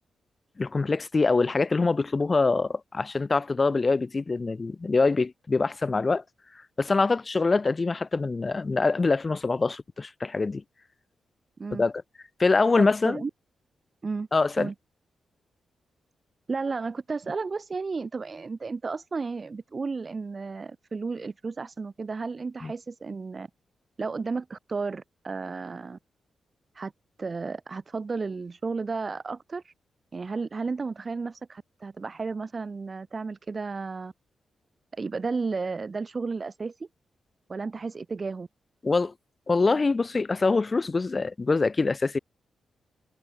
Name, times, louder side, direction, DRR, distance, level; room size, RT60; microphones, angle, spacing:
voice 1, 0.6-6.2 6.8-10.6 11.7-11.9 12.4-13.2 14.3-14.7 22.6-22.7 38.8-39.1 39.5-42.2, left 3 dB, 35° left, 0.7 m, -24 dB
voice 2, 12.8-13.3 14.0-14.3 14.6-14.7 16.5-23.5 24.0-26.0 26.7-26.9 27.2-29.7 30.1-34.1 34.9-36.9 37.5-38.5, right 4 dB, 40° right, 1.4 m, -33 dB
cardioid pair, 85°, 0 cm